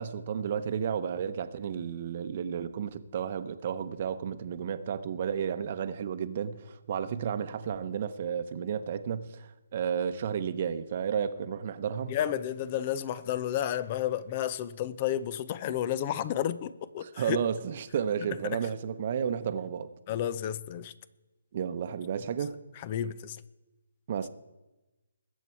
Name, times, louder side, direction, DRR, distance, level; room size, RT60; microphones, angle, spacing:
voice 1, 0.0-12.1 17.0-19.9 21.5-22.6 24.1-24.3, right 8 dB, 45° right, 0.9 m, -32 dB
voice 2, 12.1-17.4 18.4-18.6 20.1-20.9 22.8-23.4, left 10 dB, 35° left, 0.7 m, -31 dB
21.0 x 8.3 x 4.6 m
hypercardioid pair, 150°, 0 cm